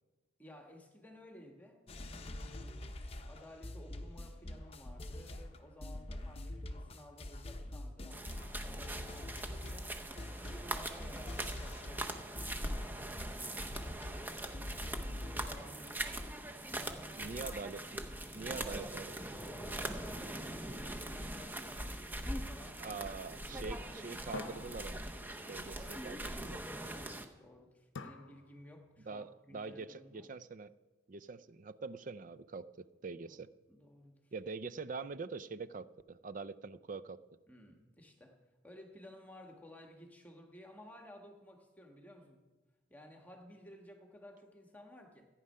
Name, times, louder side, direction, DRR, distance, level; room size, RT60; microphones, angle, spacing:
voice 1, 0.4-1.8 2.1-10.0 10.3-16.3 16.7-17.4 19.3-24.4 26.6-30.3 33.1-33.4 33.7-34.3 37.5-38.3 38.6-42.4 42.9-45.3, left 1 dB, 10° left, 3 dB, 1.3 m, -56 dB
sound 1, 1.9-12.1 12.4-15.7, left 1 dB, 30° left, 0.8 m, -44 dB
sound 2, 8.1-27.3, right 1 dB, 10° right, 0.7 m, -42 dB
voice 2, 17.2-18.0 18.3-19.2 22.8-25.0 25.5-26.6 29.0-30.7 31.1-33.5 34.3-37.2, right 4 dB, 40° right, 15 dB, 0.4 m, -44 dB
sound 3, 20.7-22.3 24.3-25.7 28.0-29.0, left 3 dB, 70° left, 0.7 m, -50 dB
15.0 x 9.4 x 5.5 m, 1.2 s
head